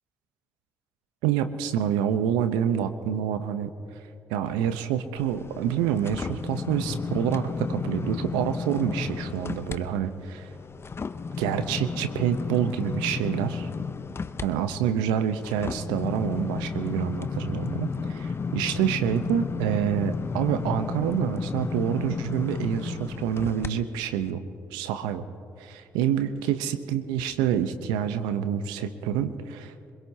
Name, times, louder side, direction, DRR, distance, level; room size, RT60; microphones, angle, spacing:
voice 1, 1.2-3.7 4.3-10.5 11.4-13.7 14.4-24.4 24.7-25.2 25.6-29.9, right 9 dB, 80° right, 11 dB, 0.7 m, -27 dB
sound 1, 5.2-9.8 10.2-23.7 24.2-24.3, left 5 dB, 35° left, 0.7 m, -33 dB
23.5 x 22.0 x 2.8 m, 2.6 s
hypercardioid pair, 45°, 7 cm